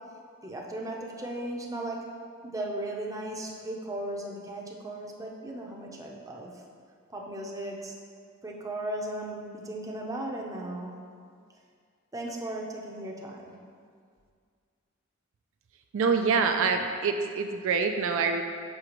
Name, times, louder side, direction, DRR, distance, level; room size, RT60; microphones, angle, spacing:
voice 1, 0.4-2.0 2.4-6.5 7.1-7.9 8.4-10.9 12.1-13.5, right 1 dB, 15° right, -1 dB, 0.6 m, -36 dB
voice 2, 15.9-18.4, right 5 dB, 70° right, 5 dB, 0.4 m, -25 dB
6.5 x 5.7 x 3.0 m, 2.1 s
head